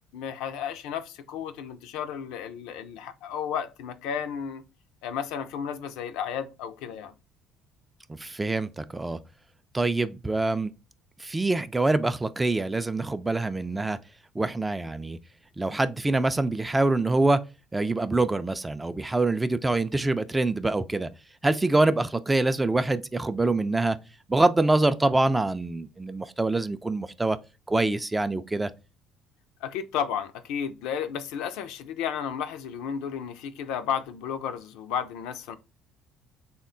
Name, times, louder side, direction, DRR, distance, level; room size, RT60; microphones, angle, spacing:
voice 1, 0.1-4.6 5.0-7.1 29.6-35.6, left 8 dB, 75° left, 0.3 m, -33 dB
voice 2, 8.2-9.2 9.7-10.7 11.2-14.0 14.4-15.2 15.6-17.4 17.7-21.1 21.4-24.0 24.3-27.4 27.7-28.7, right 2 dB, 15° right, 0.3 m, -25 dB
3.6 x 2.2 x 3.6 m
hypercardioid pair, 60°, 0 cm